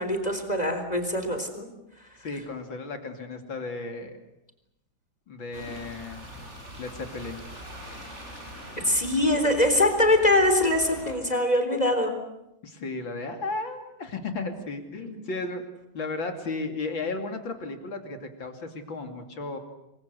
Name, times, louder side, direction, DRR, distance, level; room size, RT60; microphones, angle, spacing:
voice 1, 0.0-1.7 8.8-12.1 15.0-15.2, left 1 dB, 20° left, 6 dB, 4.0 m, -23 dB
voice 2, 2.2-4.1 5.3-6.3 6.8-7.4 12.6-15.6 15.9-19.6, left 3 dB, 75° left, 5 dB, 3.5 m, -34 dB
sound 1, 5.5-11.2, equal, 35° right, 7.1 m, -42 dB
29.0 x 23.5 x 8.1 m, 0.87 s
omnidirectional pair, 2.1 m